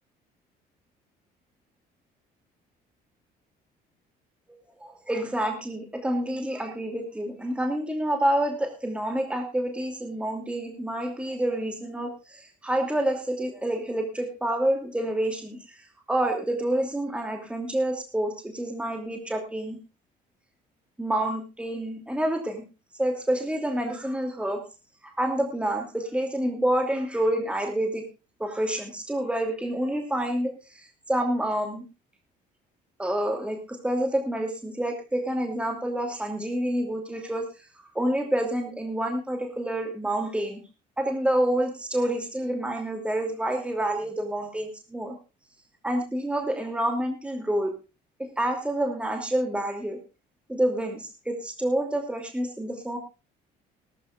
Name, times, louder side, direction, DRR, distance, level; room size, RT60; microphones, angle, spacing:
voice 1, 4.8-15.8 16.1-19.8 21.0-22.6 23.0-24.6 25.0-28.0 28.4-31.8 33.0-37.4 37.9-40.6 41.0-45.1 45.8-47.7 48.4-50.0 50.5-53.0, right 1 dB, 5° right, 3 dB, 2.8 m, -28 dB
19.0 x 13.5 x 2.5 m, 0.31 s
cardioid pair, 110°, 17 cm